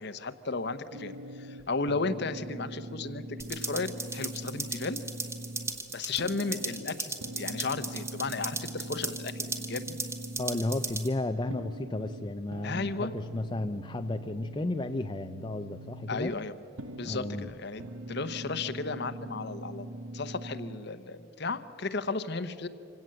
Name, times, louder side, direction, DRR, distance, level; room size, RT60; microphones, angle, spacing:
voice 1, 0.0-5.0 5.9-10.0 12.6-13.1 16.1-16.5 16.9-17.8 18.1-22.7, left 3 dB, 55° left, 12 dB, 0.9 m, -34 dB
sound 1, 0.9-20.8, right 1 dB, 80° right, 0.8 m, -43 dB
sound 2, 3.4-11.1, right 3 dB, 15° right, 1.2 m, -37 dB
voice 2, 10.4-16.3 17.0-17.5, left 2 dB, 20° left, 8 dB, 0.4 m, -33 dB
25.5 x 17.0 x 7.6 m, 2.9 s
head